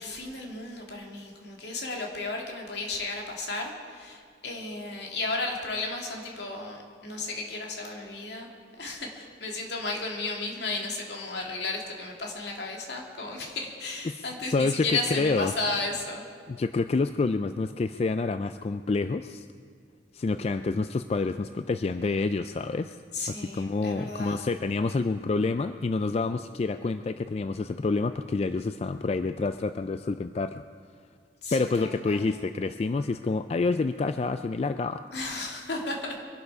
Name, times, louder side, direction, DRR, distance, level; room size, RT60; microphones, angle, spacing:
voice 1, 0.0-8.5 8.8-16.2 23.1-24.5 31.4-32.2 35.1-36.2, left 3 dB, 70° left, 0 dB, 2.4 m, -34 dB
voice 2, 14.0-15.5 16.5-19.5 20.1-23.0 23.3-30.6 31.5-35.0, left 3 dB, 35° left, 10 dB, 0.3 m, -28 dB
23.5 x 12.0 x 4.7 m, 2.1 s
head